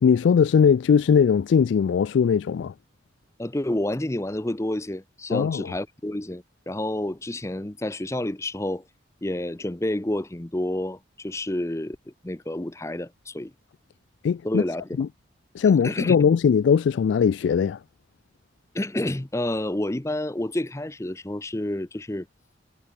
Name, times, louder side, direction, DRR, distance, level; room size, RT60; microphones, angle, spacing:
voice 1, 0.0-2.7 5.3-5.7 14.2-14.6 15.0-15.1 15.5-17.8, left 6 dB, 80° left, 0.3 m, -20 dB
voice 2, 3.4-8.8 9.2-12.0 12.2-13.5 14.4-15.0 15.8-16.2 18.7-22.3, left 1 dB, 15° left, 0.7 m, -29 dB
head